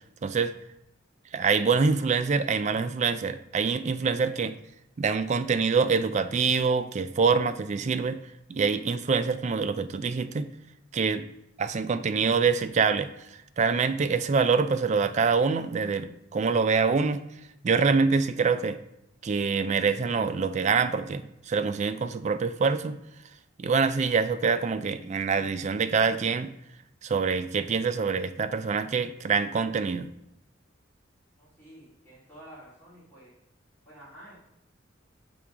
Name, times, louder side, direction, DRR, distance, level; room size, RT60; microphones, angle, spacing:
voice 1, 0.2-0.5 1.3-4.5 5.0-8.2 8.5-10.5 10.9-11.2 11.6-13.1 13.6-17.2 17.6-18.8 19.2-23.0 23.6-26.5 27.0-30.1, right 5 dB, 35° right, 12 dB, 0.3 m, -25 dB
voice 2, 31.4-33.3 33.9-34.4, right 1 dB, 10° left, -9 dB, 2.5 m, -50 dB
6.9 x 3.4 x 4.8 m, 0.83 s
head